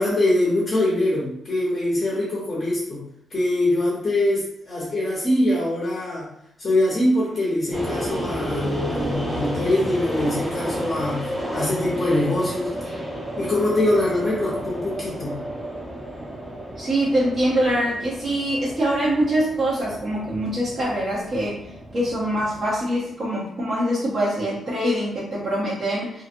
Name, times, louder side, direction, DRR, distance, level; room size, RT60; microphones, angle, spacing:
voice 1, 0.0-3.0 3.3-6.3 6.6-12.7 13.4-15.3, left 1 dB, 30° left, -6 dB, 0.7 m, -23 dB
sound 1, 7.7-22.9, equal, 5° right, 0.6 m, -31 dB
voice 2, 16.8-21.6 21.9-26.2, right 1 dB, 40° right, -7 dB, 0.8 m, -24 dB
2.8 x 2.6 x 2.5 m, 0.76 s
wide cardioid pair, 165°, 0 cm